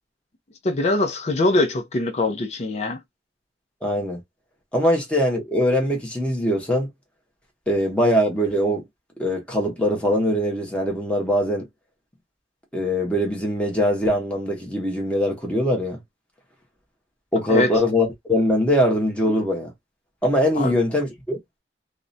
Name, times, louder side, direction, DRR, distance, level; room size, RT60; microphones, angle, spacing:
voice 1, 0.6-3.0 17.5-17.7 20.6-20.7, left 2 dB, 40° left, 0.5 m, -22 dB
voice 2, 3.8-4.2 4.7-6.9 7.7-8.8 9.2-11.7 12.7-16.0 17.3-19.7 20.2-21.4, equal, 5° left, 0.9 m, -22 dB
2.4 x 2.1 x 2.5 m
head